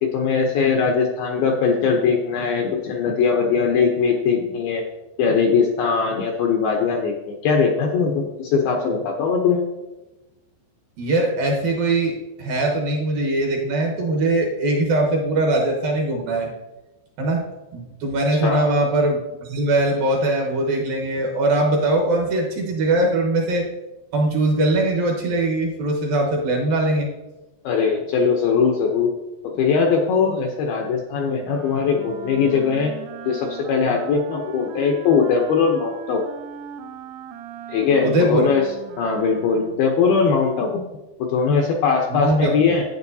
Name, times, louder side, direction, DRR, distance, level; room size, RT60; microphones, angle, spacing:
voice 1, 0.0-4.8 5.2-9.6 18.4-18.6 27.6-29.1 29.4-32.9 33.3-36.2 37.7-38.6 39.0-40.8 41.3-42.8, left 5 dB, 75° left, 1 dB, 2.3 m, -20 dB
voice 2, 11.0-16.5 17.2-17.4 17.7-23.6 24.1-27.1 38.0-38.5 42.1-42.5, right 2 dB, 65° right, 0 dB, 2.5 m, -21 dB
Wind instrument woodwind instrument, 31.4-40.0, right 8 dB, 80° right, 2.5 m, -38 dB
11.5 x 9.2 x 2.7 m, 1.0 s
omnidirectional pair, 5.2 m